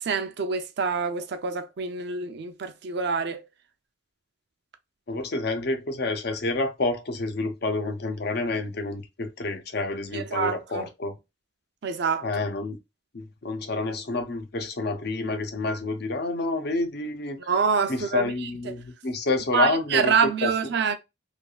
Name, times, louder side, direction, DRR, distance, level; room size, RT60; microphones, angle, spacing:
voice 1, 0.0-3.4 10.1-10.9 11.8-12.3 17.4-18.5 19.5-20.9, right 5 dB, 60° right, 0.5 m, -26 dB
voice 2, 5.1-11.1 12.2-12.8 13.1-17.4 17.9-20.2 20.4-20.5, left 2 dB, 55° left, 0.7 m, -28 dB
3.4 x 2.4 x 2.3 m
head